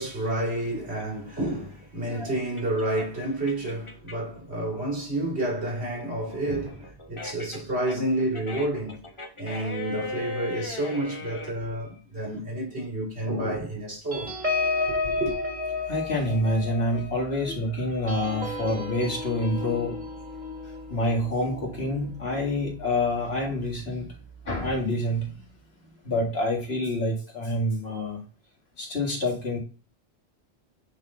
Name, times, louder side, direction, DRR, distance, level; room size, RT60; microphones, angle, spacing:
voice 1, 0.0-9.0 9.4-14.3 14.9-15.3, right 1 dB, 85° right, 3.0 m, -30 dB
sound 1, 0.9-4.4 4.8-11.5, left 3 dB, 30° left, 1.0 m, -38 dB
voice 2, 2.0-2.3 15.9-20.0 20.9-24.1 24.5-25.3 26.0-28.2 28.8-29.6, left 1 dB, 70° left, 2.2 m, -27 dB
sound 2, 14.1-23.0 23.5-23.7 24.0-24.3, left 3 dB, 45° right, 1.8 m, -33 dB
8.5 x 3.9 x 3.8 m
omnidirectional pair, 1.1 m